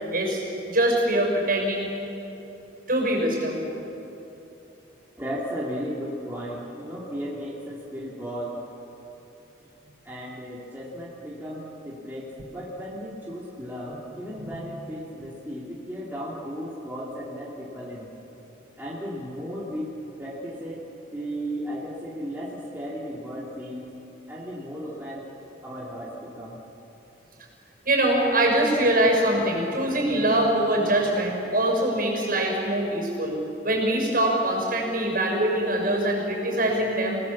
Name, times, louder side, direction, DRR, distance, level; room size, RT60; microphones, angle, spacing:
voice 1, 0.7-1.9 2.9-3.6 14.4-14.5 27.8-33.4 33.6-37.2, right 1 dB, 45° right, 1 dB, 6.3 m, -23 dB
voice 2, 5.2-8.6 10.0-18.1 18.8-20.8 21.1-23.9 24.3-25.3 25.6-26.6, equal, 10° right, -6 dB, 2.6 m, -35 dB
30.0 x 18.5 x 7.3 m, 3.0 s
head